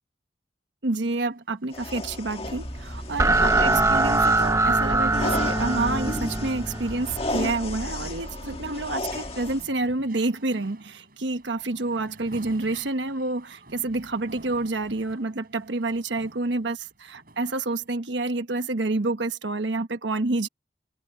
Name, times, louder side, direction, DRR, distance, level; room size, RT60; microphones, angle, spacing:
voice 1, 0.8-20.5, right 2 dB, 85° right, 1.2 m, -28 dB
sound 1, 1.3-18.3, right 2 dB, 55° right, 6.5 m, -50 dB
sound 2, 1.7-9.7, left 2 dB, 35° left, 1.7 m, -34 dB
sound 3, 2.4-7.5, right 2 dB, 15° right, 1.0 m, -23 dB
head